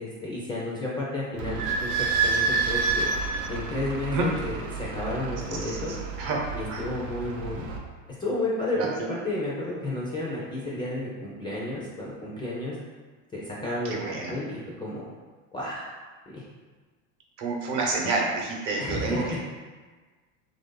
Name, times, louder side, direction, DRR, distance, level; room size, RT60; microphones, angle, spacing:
voice 1, 0.0-3.1 3.5-5.9 6.5-7.7 8.2-12.8 13.3-15.1 15.5-15.9 16.3-16.4 18.8-19.4, left 2 dB, 10° left, -6 dB, 0.4 m, -32 dB
Idling / Squeak, 1.4-7.8, right 4 dB, 75° right, 0.7 m, -29 dB
voice 2, 5.7-6.4 6.7-6.8 8.7-9.1 13.8-14.3 17.4-19.4, right 3 dB, 50° right, -1 dB, 0.9 m, -29 dB
3.1 x 2.6 x 3.7 m, 1.4 s
supercardioid pair, 120°, 41 cm